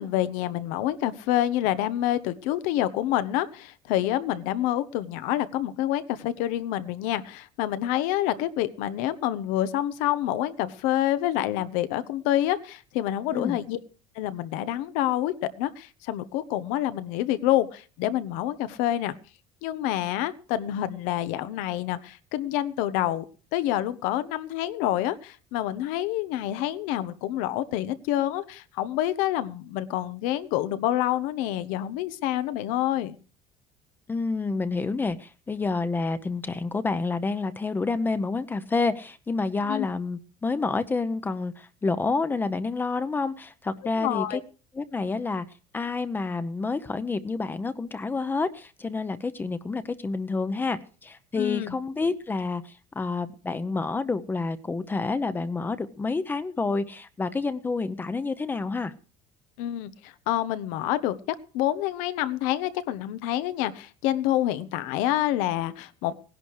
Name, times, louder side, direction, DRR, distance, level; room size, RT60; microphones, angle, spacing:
voice 1, 0.0-13.8 14.1-19.1 19.6-23.2 23.5-33.2 39.7-39.9 43.9-44.4 51.4-51.8 59.6-66.1, left 13 dB, 85° left, 1.2 m, -27 dB
voice 2, 34.1-44.4 44.7-45.4 45.7-58.9, left 3 dB, 15° left, 0.8 m, -29 dB
18.0 x 11.0 x 4.8 m
cardioid pair, 150°, 13 cm